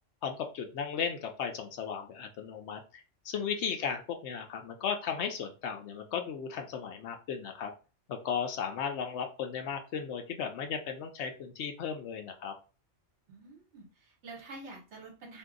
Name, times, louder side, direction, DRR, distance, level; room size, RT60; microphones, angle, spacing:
voice 1, 0.2-7.7 8.1-12.5, left 7 dB, 70° left, 5 dB, 0.8 m, -35 dB
voice 2, 13.3-15.4, right 2 dB, 65° right, 1 dB, 1.2 m, -48 dB
2.6 x 2.3 x 3.7 m, 0.33 s
omnidirectional pair, 1.3 m